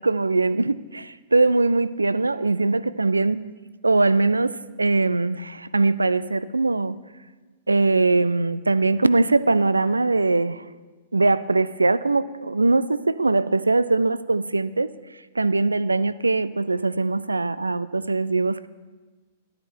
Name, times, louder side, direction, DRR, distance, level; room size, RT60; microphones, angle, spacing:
voice 1, 0.0-3.5 3.8-7.0 7.7-10.6 11.1-14.9 15.4-18.7, right 3 dB, 80° right, 17 dB, 0.3 m, -21 dB
12.0 x 10.0 x 4.5 m, 1.3 s
figure-of-eight pair, 100°, 0 cm